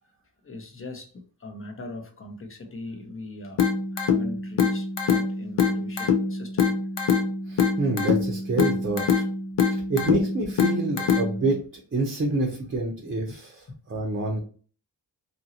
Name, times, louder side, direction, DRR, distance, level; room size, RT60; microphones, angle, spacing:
voice 1, 0.4-3.6 3.9-6.8 8.6-8.7 12.3-12.4 13.3-13.4 13.7-13.8, left 2 dB, 30° left, 4 dB, 0.8 m, -40 dB
sound 1, 3.6-11.6, left 5 dB, 80° left, 0.6 m, -24 dB
voice 2, 7.5-9.2 9.7-14.4, right 2 dB, 30° right, 0 dB, 0.7 m, -27 dB
2.8 x 2.7 x 2.8 m, 0.41 s
cardioid pair, 85°, 42 cm